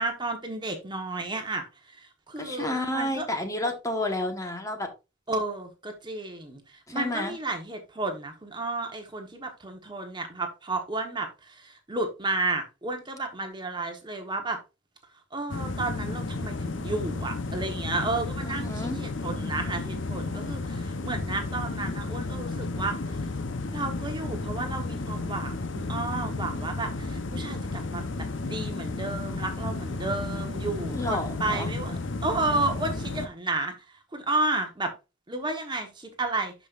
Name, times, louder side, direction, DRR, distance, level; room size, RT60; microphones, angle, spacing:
voice 1, 0.0-3.3 5.3-14.6 15.3-23.3 23.7-33.7 34.1-34.9 35.3-36.5, right 2 dB, 25° right, 1.2 m, -32 dB
voice 2, 2.4-4.9 6.9-7.4 18.5-19.0 30.9-31.7, left 1 dB, 15° left, 1.3 m, -30 dB
sound 1, 15.5-33.3, left 3 dB, 75° left, 0.9 m, -32 dB
11.5 x 5.3 x 2.5 m
head